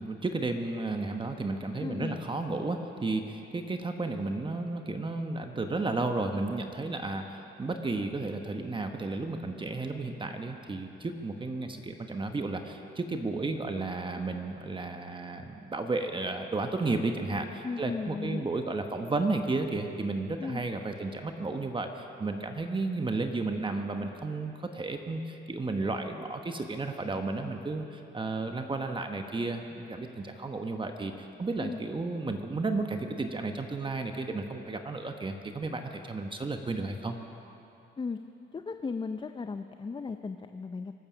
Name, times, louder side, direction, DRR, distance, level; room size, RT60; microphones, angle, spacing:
voice 1, 0.0-37.2, right 3 dB, 25° right, 5 dB, 1.1 m, -33 dB
voice 2, 1.8-2.2 17.6-18.4 20.4-20.6 31.6-31.8 38.0-38.2 38.5-40.9, left 4 dB, 25° left, 8 dB, 0.5 m, -36 dB
25.0 x 8.7 x 6.3 m, 2.9 s
cardioid pair, 90°, 20 cm